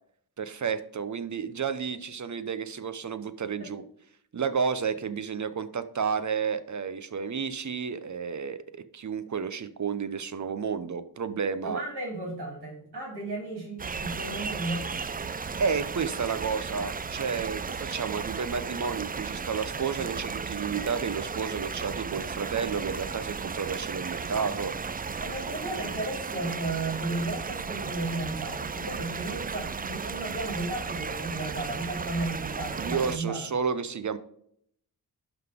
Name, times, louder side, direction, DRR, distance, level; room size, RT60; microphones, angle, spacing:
voice 1, 0.4-3.8 4.3-11.8 15.6-24.7 32.8-34.2, right 6 dB, 50° right, 12 dB, 0.8 m, -31 dB
voice 2, 11.6-14.9 25.2-33.4, right 2 dB, 75° right, -2 dB, 3.0 m, -34 dB
sound 1, 13.8-33.2, right 5 dB, 25° right, 0.4 m, -35 dB
11.5 x 4.0 x 3.6 m, 0.67 s
cardioid pair, 55°, 39 cm